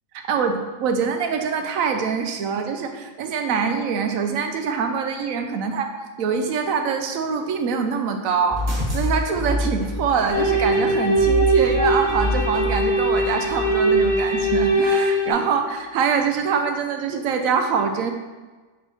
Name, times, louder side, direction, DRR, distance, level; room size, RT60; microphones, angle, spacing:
voice 1, 0.3-5.9 6.2-8.6 8.9-18.1, right 6 dB, 85° right, 5 dB, 1.1 m, -24 dB
sound 1, 8.5-14.6, left 2 dB, 25° right, 1.2 m, -27 dB
sound 2, 10.3-15.3, right 1 dB, 50° left, 1.7 m, -21 dB
7.0 x 3.4 x 4.3 m, 1.3 s
omnidirectional pair, 1.4 m